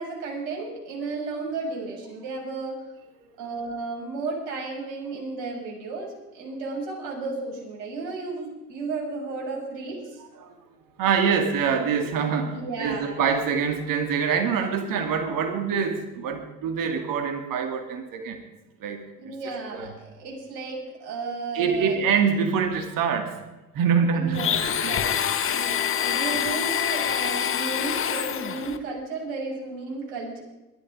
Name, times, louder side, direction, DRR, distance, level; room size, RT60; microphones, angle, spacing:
voice 1, 0.0-2.8 3.4-10.2 12.4-13.2 19.2-22.0 24.1-30.4, right 3 dB, 60° right, -1 dB, 7.1 m, -33 dB
voice 2, 11.0-18.4 18.8-19.3 19.7-19.9 21.5-23.3 23.7-25.0, right 6 dB, 40° right, 6 dB, 2.5 m, -25 dB
Domestic sounds home sounds, 24.3-28.8, left 9 dB, 25° left, 1.3 m, -26 dB
21.5 x 12.0 x 5.0 m, 1.1 s
hypercardioid pair, 85°, 50 cm